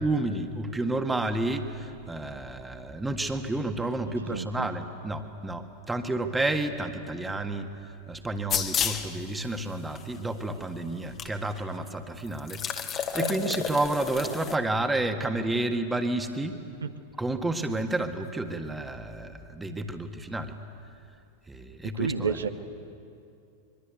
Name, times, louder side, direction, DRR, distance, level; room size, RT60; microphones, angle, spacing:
voice 1, 0.0-12.6 13.0-16.6 17.2-20.5 21.5-22.4, right 2 dB, 10° right, 6 dB, 1.7 m, -30 dB
voice 2, 4.2-4.7 13.2-13.4 16.8-16.9 22.0-22.5, right 6 dB, 70° right, 8 dB, 1.1 m, -30 dB
sound 1, 8.5-9.1 10.0-10.1 11.2-11.3 11.6-11.7 12.4-14.6, left 8 dB, 30° left, 1.8 m, -30 dB
24.5 x 23.0 x 8.2 m, 2.6 s
figure-of-eight pair, 90°, 0 cm